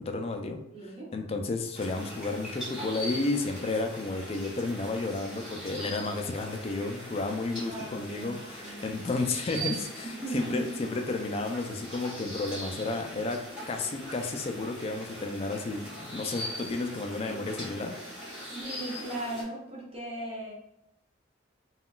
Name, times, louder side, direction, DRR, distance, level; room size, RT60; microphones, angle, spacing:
voice 1, 0.0-0.6 1.1-13.4 13.7-17.9, left 3 dB, 30° left, 5 dB, 0.3 m, -32 dB
voice 2, 0.7-1.1 7.6-9.0 10.2-10.7 17.2-17.4 18.5-20.5, right 1 dB, 35° right, -5 dB, 0.7 m, -37 dB
sound 1, 1.7-19.4, equal, ahead, 1.4 m, -41 dB
3.7 x 2.3 x 2.3 m, 0.85 s
head